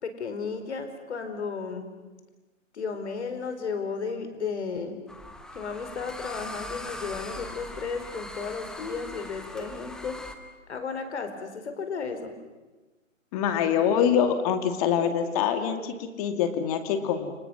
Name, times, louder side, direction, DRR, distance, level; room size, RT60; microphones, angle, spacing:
voice 1, 0.0-1.9 2.7-5.0 5.5-10.2 10.7-12.3, left 5 dB, 60° left, 8 dB, 4.4 m, -34 dB
sound 1, 5.1-10.4, left 1 dB, ahead, 0.9 m, -40 dB
voice 2, 13.3-17.3, left 8 dB, 30° left, 8 dB, 2.5 m, -25 dB
30.0 x 25.5 x 6.3 m, 1.2 s
figure-of-eight pair, 135°, 39 cm